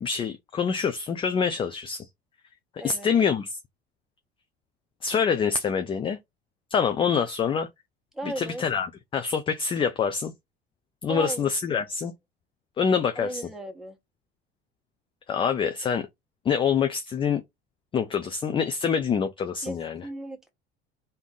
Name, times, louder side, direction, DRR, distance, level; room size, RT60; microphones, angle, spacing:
voice 1, 0.0-2.1 2.8-3.5 5.0-6.2 6.7-7.7 8.4-8.9 9.1-10.3 11.0-12.1 12.8-13.4 15.3-16.1 16.5-17.4 17.9-20.0, left 6 dB, 15° left, 0.4 m, -25 dB
voice 2, 2.8-3.1 8.1-8.6 11.1-11.5 13.2-14.0 19.6-20.5, right 2 dB, ahead, 1.2 m, -36 dB
3.4 x 2.7 x 3.7 m
figure-of-eight pair, 65°, 32 cm